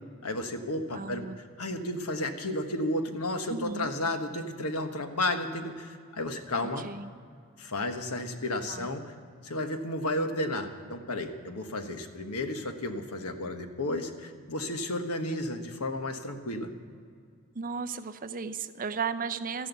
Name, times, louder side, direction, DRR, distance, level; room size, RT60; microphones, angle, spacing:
voice 1, 0.2-6.9 7.6-9.1 9.4-16.7, left 1 dB, 90° left, 6 dB, 1.4 m, -33 dB
voice 2, 0.9-1.8 3.5-3.9 6.8-7.1 8.7-8.9 17.5-19.7, right 5 dB, 40° right, 10 dB, 0.6 m, -35 dB
13.5 x 11.0 x 8.1 m, 2.2 s
head